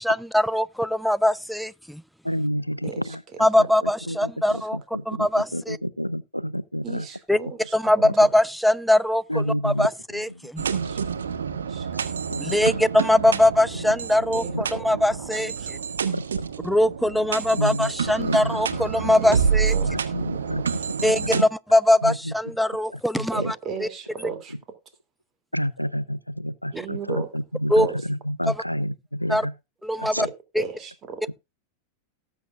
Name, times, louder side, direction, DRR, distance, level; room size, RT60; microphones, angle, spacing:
voice 1, 0.0-2.0 3.4-4.8 5.1-5.8 7.3-7.4 7.7-9.2 9.6-10.6 12.4-14.4 14.8-15.8 16.6-19.7 21.0-23.6 23.8-23.9 27.7-27.9 29.3-29.5 29.8-30.3 30.5-30.6, left 1 dB, ahead, 0.5 m, -21 dB
voice 2, 2.2-7.1 7.4-7.5 8.0-8.1 9.3-9.9 10.1-10.5 10.8-11.1 11.9-12.8 13.2-13.3 14.5-14.8 16.1-16.2 17.5-19.1 19.8-20.8 21.2-21.4 22.0-22.3 22.9-23.5 25.5-29.5 30.0-30.3 31.3-31.4, equal, 90° left, 0.5 m, -30 dB
voice 3, 6.8-8.0 10.8-11.0 11.7-11.9 14.3-14.9 15.2-15.3 15.6-15.7 19.2-19.9 20.2-20.5 23.3-24.5 26.7-27.3 27.8-27.9 30.2-30.3 30.6-31.2, right 6 dB, 30° right, 2.7 m, -36 dB
sound 1, 10.6-21.4, right 6 dB, 70° right, 1.3 m, -28 dB
19.0 x 7.9 x 2.4 m
figure-of-eight pair, 90°, 0 cm